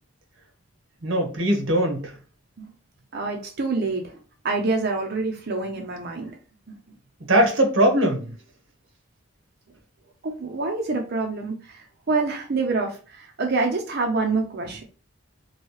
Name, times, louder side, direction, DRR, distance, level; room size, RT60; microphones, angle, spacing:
voice 1, 1.0-2.1 7.3-8.3, right 1 dB, 65° right, 1.0 m, -20 dB
voice 2, 3.1-4.1 4.4-6.4 6.7-6.8 10.2-14.8, right 3 dB, 50° right, 0.5 m, -26 dB
3.1 x 2.7 x 3.0 m
head